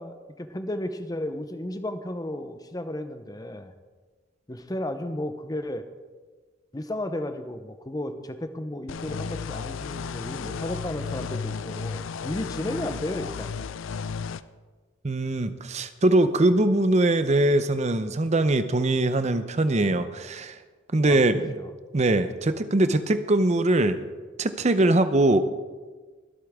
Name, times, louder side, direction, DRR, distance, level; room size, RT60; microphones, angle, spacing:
voice 1, 0.0-3.7 4.5-5.8 6.7-13.5 21.1-21.2 21.5-21.7, left 1 dB, 20° left, 9 dB, 0.7 m, -33 dB
sound 1, 8.9-14.4, left 5 dB, 70° left, 0.4 m, -34 dB
voice 2, 15.0-20.5 20.9-21.6 21.9-24.0 24.4-25.4, right 2 dB, 35° right, 11 dB, 0.7 m, -22 dB
23.5 x 8.4 x 3.6 m, 1.4 s
head